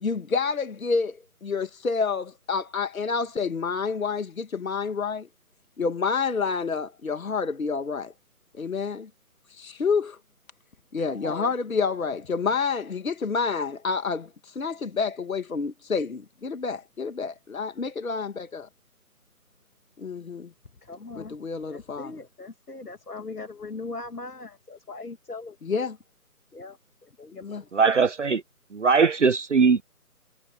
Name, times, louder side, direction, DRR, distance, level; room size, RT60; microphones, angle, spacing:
voice 1, 0.0-5.3 5.8-8.1 8.6-9.1 9.5-10.2 10.9-18.7 20.0-20.5 21.2-22.2 25.6-26.0 27.4-27.6, left 5 dB, 60° left, 1.7 m, -28 dB
voice 2, 11.1-11.5 20.9-21.4 21.7-25.8 26.5-26.8 27.2-27.7, left 3 dB, 75° left, 2.4 m, -39 dB
voice 3, 27.7-28.4 28.7-29.8, right 5 dB, 50° right, 1.1 m, -20 dB
figure-of-eight pair, 165°, 46 cm